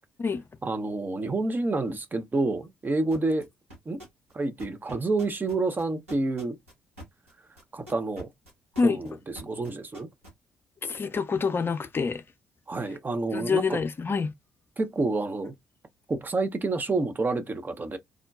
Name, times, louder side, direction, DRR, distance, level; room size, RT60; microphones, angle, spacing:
voice 1, 0.6-3.5 3.9-4.0 4.3-6.6 7.7-8.3 8.8-10.1 12.7-13.8 14.8-15.5 16.1-18.0, right 3 dB, 30° right, 0.6 m, -28 dB
sound 1, 3.1-3.4 3.7-4.3 4.6-10.3, equal, 90° right, 1.0 m, -44 dB
voice 2, 10.8-12.2 13.3-14.3, left 5 dB, 35° left, 0.5 m, -26 dB
3.6 x 2.2 x 2.3 m
figure-of-eight pair, 45°, 7 cm